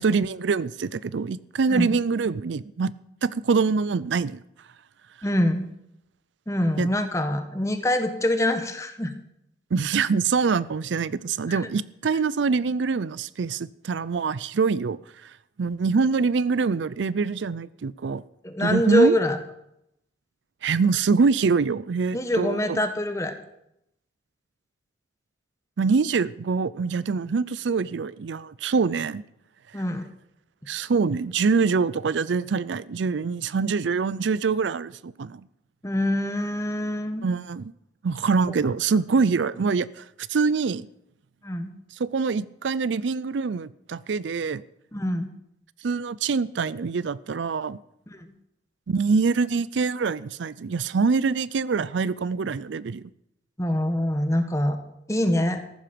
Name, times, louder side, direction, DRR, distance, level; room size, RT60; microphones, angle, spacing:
voice 1, 0.0-2.9 3.2-4.4 6.8-6.9 9.7-15.3 15.6-18.2 18.6-19.2 20.6-22.8 25.8-29.2 30.7-35.4 37.2-37.7 38.0-40.9 42.0-44.6 45.8-47.8 48.9-53.0, right 5 dB, 85° right, 19 dB, 0.5 m, -24 dB
voice 2, 5.2-5.7 6.5-9.1 11.5-11.6 18.4-19.4 22.1-23.3 29.7-30.0 35.8-37.2 41.4-41.7 44.9-45.3 48.1-48.3 53.6-54.8 55.1-55.6, left 1 dB, 15° left, 7 dB, 1.2 m, -24 dB
14.5 x 11.5 x 5.2 m, 0.79 s
head